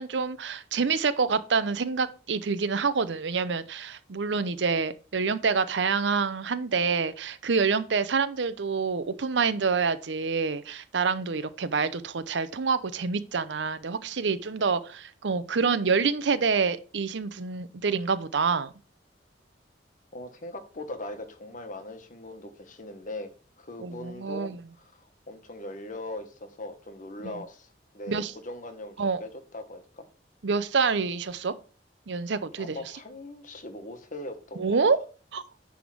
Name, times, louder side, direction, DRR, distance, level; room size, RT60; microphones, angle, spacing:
voice 1, 0.0-18.7 23.8-24.6 28.1-28.3 29.0-29.2 30.4-31.5 32.1-32.8 34.6-35.0 35.3-35.4, right 5 dB, 75° right, 0.7 m, -27 dB
voice 2, 20.1-23.3 23.6-27.7 27.9-30.1 32.6-34.8, left 1 dB, 45° left, 1.2 m, -40 dB
10.0 x 3.6 x 6.1 m
head